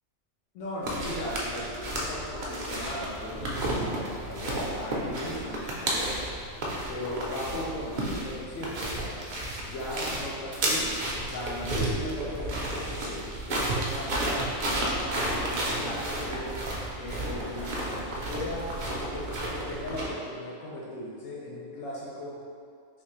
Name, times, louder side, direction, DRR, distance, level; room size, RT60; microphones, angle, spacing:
voice 1, 0.5-6.2 6.9-9.2 9.6-14.5 14.9-16.6 17.0-18.7 19.1-22.4, left 1 dB, 85° left, -5 dB, 1.0 m, -37 dB
sound 1, 0.8-20.1, right 1 dB, 50° right, 0.6 m, -32 dB
3.5 x 2.7 x 3.0 m, 2.2 s
omnidirectional pair, 1.3 m